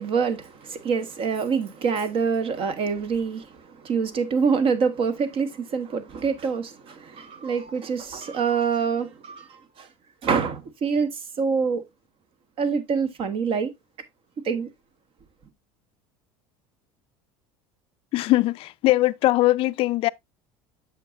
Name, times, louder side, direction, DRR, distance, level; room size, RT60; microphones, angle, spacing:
voice 1, 0.0-9.9 10.2-11.8 12.6-13.7 14.4-14.7, right 5 dB, 50° right, 1.4 m, -26 dB
voice 2, 18.1-20.1, left 17 dB, 55° left, 0.4 m, -21 dB
8.1 x 6.1 x 2.5 m
supercardioid pair, 105°, 12 cm